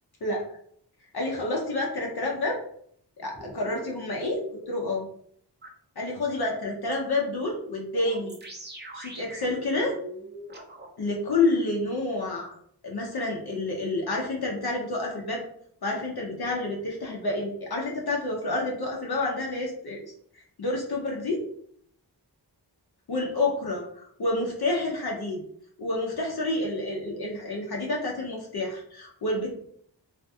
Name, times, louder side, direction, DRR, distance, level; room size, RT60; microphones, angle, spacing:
voice 1, 1.1-2.6 3.2-5.1 6.0-8.4 8.9-10.0 11.0-12.5 12.8-15.4 15.8-20.0 20.3-21.4 23.1-25.4 25.8-29.5, left 2 dB, 60° left, -1 dB, 0.6 m, -29 dB
sound 1, 3.3-4.8 5.6-5.7 7.9-10.9, right 1 dB, 25° right, 0.5 m, -42 dB
2.5 x 2.3 x 2.5 m, 0.65 s
wide cardioid pair, 55°, 43 cm